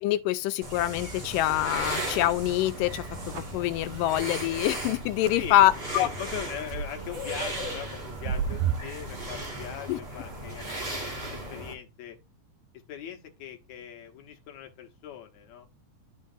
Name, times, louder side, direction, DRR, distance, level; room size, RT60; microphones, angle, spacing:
voice 1, 0.0-3.0 3.3-6.1 9.9-10.0, left 14 dB, 85° left, 2.2 m, -25 dB
sound 1, 0.6-11.7, right 1 dB, 25° right, 1.3 m, -37 dB
sound 2, 0.8-9.8, right 8 dB, 80° right, 1.6 m, -38 dB
voice 2, 5.3-12.2 12.9-15.7, left 10 dB, 65° left, 2.2 m, -40 dB
11.5 x 3.9 x 2.6 m
omnidirectional pair, 3.8 m